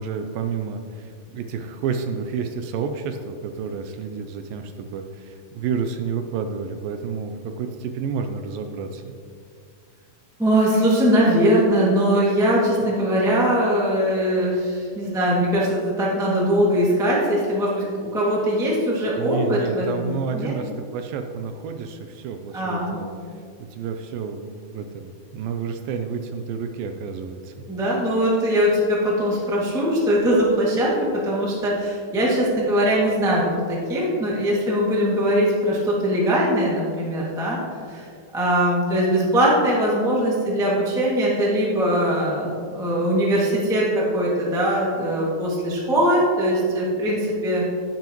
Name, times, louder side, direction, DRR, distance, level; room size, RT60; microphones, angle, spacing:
voice 1, 0.0-9.1 19.2-23.1 23.7-27.6, right 6 dB, 80° right, 6 dB, 2.1 m, -30 dB
voice 2, 10.4-20.1 20.3-20.5 22.5-23.0 27.7-37.6 37.9-38.0 38.3-47.6, equal, 5° right, -5 dB, 0.4 m, -21 dB
10.5 x 10.5 x 3.0 m, 2.2 s
omnidirectional pair, 4.3 m